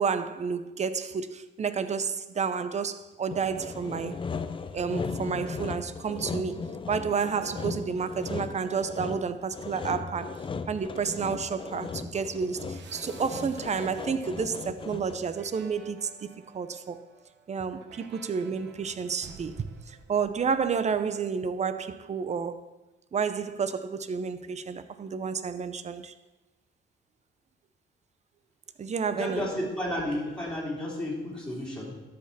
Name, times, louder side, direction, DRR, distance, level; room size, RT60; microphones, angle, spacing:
voice 1, 0.0-4.2 4.7-16.3 16.5-17.0 17.5-22.7 23.1-26.1 28.8-29.5, right 6 dB, 35° right, 0.6 m, -30 dB
Sawing, 3.3-15.4, left 5 dB, 25° left, 0.5 m, -37 dB
sound 1, 12.7-21.2, right 5 dB, 65° right, 1.0 m, -52 dB
voice 2, 29.1-32.0, left 1 dB, 5° left, 3.0 m, -32 dB
12.5 x 5.1 x 4.1 m
cardioid pair, 90°, 20 cm